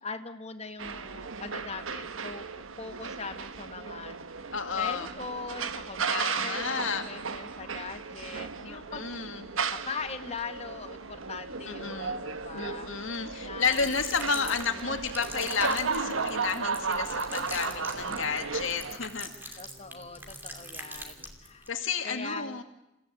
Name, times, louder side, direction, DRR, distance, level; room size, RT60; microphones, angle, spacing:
voice 1, 0.0-4.2 4.8-9.0 9.7-12.9 13.4-13.9 14.3-15.0 17.7-18.4 19.6-21.7 22.0-22.6, left 4 dB, 30° left, 8 dB, 1.6 m, -41 dB
sound 1, 0.8-19.0, right 5 dB, 80° right, 1.2 m, -35 dB
voice 2, 4.5-5.1 6.1-7.0 8.6-9.5 11.7-12.2 12.5-19.6 21.7-22.6, left 5 dB, 75° left, 6 dB, 2.2 m, -32 dB
sound 2, 13.6-21.7, right 1 dB, 10° right, 2.6 m, -43 dB
sound 3, 15.1-21.3, right 1 dB, 35° right, 5.1 m, -56 dB
29.0 x 16.0 x 8.5 m, 0.89 s
head